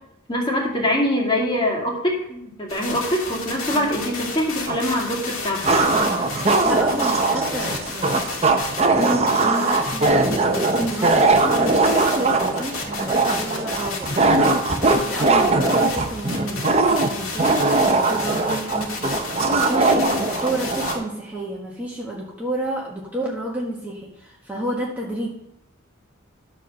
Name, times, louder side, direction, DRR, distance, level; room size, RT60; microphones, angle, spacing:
voice 1, 0.3-5.6, left 1 dB, 25° left, -2 dB, 2.1 m, -23 dB
sound 1, 2.7-20.9, left 4 dB, 85° left, 2.1 m, -33 dB
sound 2, 4.7-4.8 5.6-21.0, right 3 dB, 30° right, 0.8 m, -20 dB
voice 2, 5.9-8.4 8.8-14.1 14.8-19.2 19.5-25.3, right 1 dB, 10° right, -4 dB, 1.4 m, -30 dB
11.5 x 4.4 x 6.4 m, 0.78 s
head